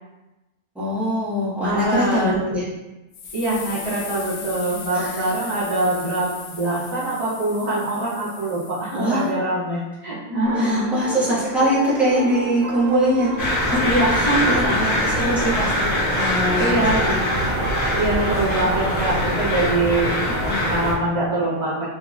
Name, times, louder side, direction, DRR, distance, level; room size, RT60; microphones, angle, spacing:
voice 1, 0.7-2.6 4.9-5.1 8.9-9.3 10.6-13.8 14.1-17.2 18.4-18.6 19.1-19.3 20.2-20.6, equal, ahead, -10 dB, 0.9 m, -23 dB
voice 2, 1.6-2.3 3.3-10.9 13.8-15.0 16.6-17.1 17.9-21.9, right 2 dB, 25° right, -11 dB, 0.8 m, -23 dB
sound 1, 3.1-9.3, left 5 dB, 85° left, 1.1 m, -38 dB
sound 2, 10.4-19.2, right 3 dB, 70° right, 0.5 m, -32 dB
sound 3, 13.4-20.9, left 1 dB, 50° left, 0.7 m, -23 dB
3.8 x 2.9 x 2.3 m, 1.0 s
omnidirectional pair, 1.5 m